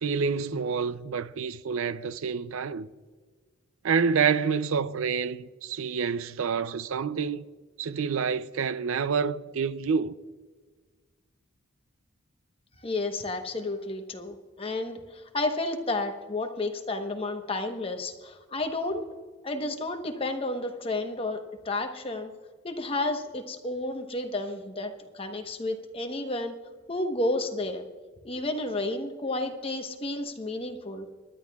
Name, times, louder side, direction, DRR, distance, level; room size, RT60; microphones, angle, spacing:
voice 1, 0.0-2.9 3.8-7.4 7.8-10.2, right 6 dB, 70° right, 0.5 m, -28 dB
voice 2, 12.8-19.0 19.4-22.3 22.6-26.5 26.9-27.8 28.2-31.1, left 2 dB, 25° left, 1.0 m, -31 dB
25.0 x 11.0 x 2.3 m
head